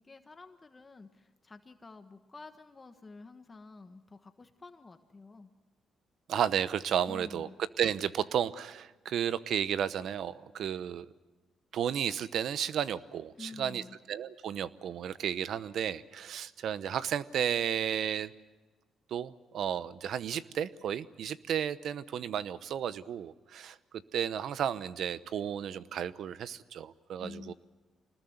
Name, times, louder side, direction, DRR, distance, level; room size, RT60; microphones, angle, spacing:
voice 1, 0.0-5.5 7.1-7.6 13.3-14.0 27.2-27.5, left 3 dB, 25° left, 7 dB, 1.4 m, -49 dB
voice 2, 6.3-7.5 7.8-11.1 11.7-18.3 19.1-23.8 24.1-27.5, right 9 dB, 70° right, 15 dB, 0.9 m, -33 dB
25.5 x 20.0 x 8.0 m, 1.2 s
cardioid pair, 90°, 0 cm